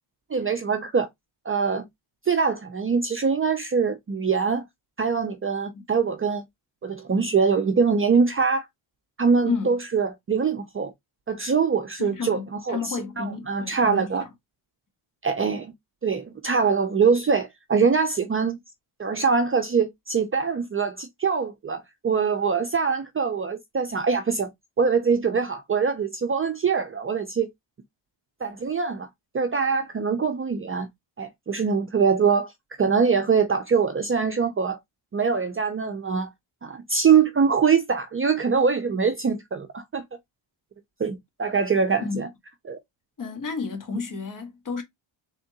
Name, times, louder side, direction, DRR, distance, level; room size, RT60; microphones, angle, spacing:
voice 1, 0.3-1.1 1.5-1.8 2.3-4.6 5.0-6.4 6.8-8.6 9.2-10.9 11.3-14.2 15.2-15.7 16.0-18.6 19.0-24.5 24.8-27.5 28.4-29.1 29.3-30.9 31.2-32.5 32.8-34.8 35.1-36.3 36.6-40.0 41.0-42.3 42.7-42.8, right 5 dB, 25° right, 0.5 m, -23 dB
voice 2, 12.0-14.3 42.0-42.2 43.2-44.8, left 5 dB, 40° left, 1.5 m, -31 dB
3.6 x 3.5 x 2.7 m
cardioid pair, 120°, 49 cm